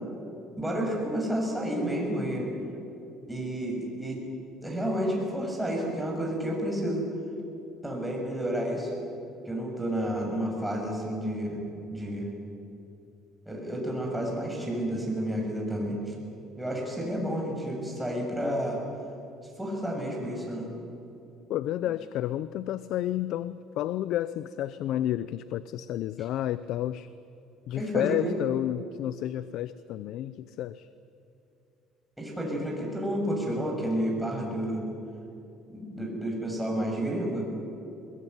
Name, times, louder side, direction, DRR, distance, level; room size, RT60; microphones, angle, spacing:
voice 1, 0.6-2.5 3.3-4.2 4.6-7.1 7.8-8.9 9.5-12.3 13.5-16.1 16.6-18.8 19.6-20.7 27.7-28.3 32.2-34.9 35.7-37.5, equal, 5° right, -1 dB, 7.0 m, -30 dB
voice 2, 21.5-27.1 27.7-30.9, left 12 dB, 65° left, 15 dB, 0.6 m, -31 dB
22.0 x 21.5 x 9.6 m, 2.8 s
cardioid pair, 125°, 0 cm